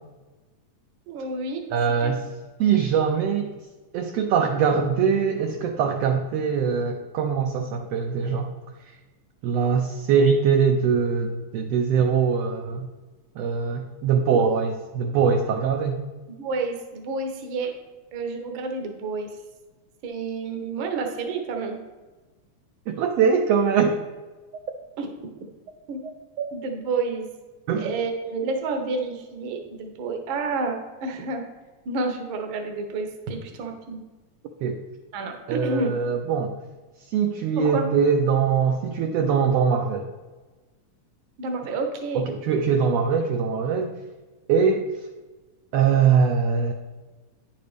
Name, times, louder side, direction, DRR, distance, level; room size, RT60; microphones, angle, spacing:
voice 1, 1.1-1.6 2.0-2.1 2.6-2.7 14.4-14.5 16.4-17.7 18.1-19.3 20.0-21.8 25.0-25.1 25.9-26.0 26.5-27.3 27.8-31.4 31.8-34.0 35.1-36.0 37.6-37.9 41.4-42.3, right 3 dB, 65° right, 4 dB, 1.2 m, -29 dB
voice 2, 1.7-2.3 2.6-3.5 3.9-8.5 8.8-9.0 9.4-12.9 13.3-16.0 22.9-24.0 26.0-26.1 26.4-26.5 27.7-27.9 34.6-34.8 35.5-36.6 37.1-40.1 42.1-43.9 44.5-45.1 45.7-46.7, right 6 dB, 80° right, 4 dB, 1.4 m, -22 dB
9.5 x 6.7 x 3.3 m, 1.2 s
omnidirectional pair, 3.4 m